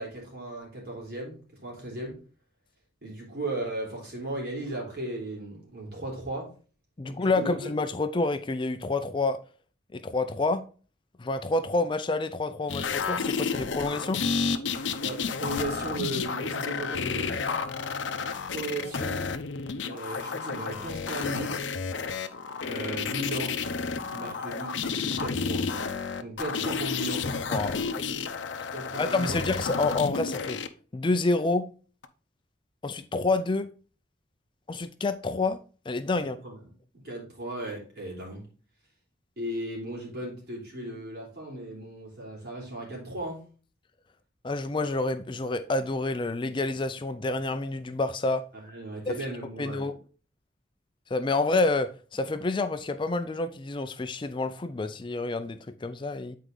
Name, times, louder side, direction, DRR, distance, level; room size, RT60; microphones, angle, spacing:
voice 1, 0.0-2.2 3.0-6.5 7.0-7.7 15.0-17.4 18.5-19.2 19.8-21.7 22.7-23.6 24.1-25.6 26.2-27.3 28.7-29.4 36.2-36.6 36.9-38.4 39.4-43.4 48.5-49.9, right 1 dB, 55° right, 3.6 m, -36 dB
voice 2, 7.0-9.4 9.9-10.6 11.2-14.2 27.5-27.9 29.0-30.6 30.9-31.7 32.8-33.7 34.7-35.6 35.9-36.4 44.4-48.4 49.1-49.2 49.6-49.9 51.1-56.4, left 3 dB, 25° left, 0.4 m, -28 dB
sound 1, 12.7-30.7 32.0-32.1, left 5 dB, 80° left, 0.6 m, -31 dB
8.1 x 4.6 x 3.8 m
head